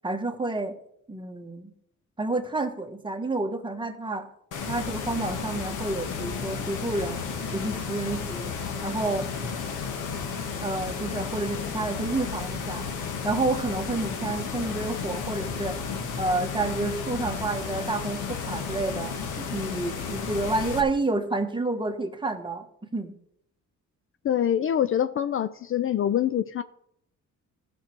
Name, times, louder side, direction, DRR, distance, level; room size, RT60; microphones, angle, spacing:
voice 1, 0.0-0.8 1.1-1.7 2.2-4.3 4.7-7.2 7.5-8.5 8.8-9.3 10.6-12.9 13.2-15.8 16.2-22.7 22.9-23.1, right 2 dB, 15° right, 1.3 m, -29 dB
sound 1, 4.5-20.8, left 5 dB, 90° left, 1.5 m, -33 dB
voice 2, 24.2-26.6, left 10 dB, 45° left, 0.4 m, -25 dB
14.0 x 6.3 x 4.5 m
cardioid pair, 90°, 30 cm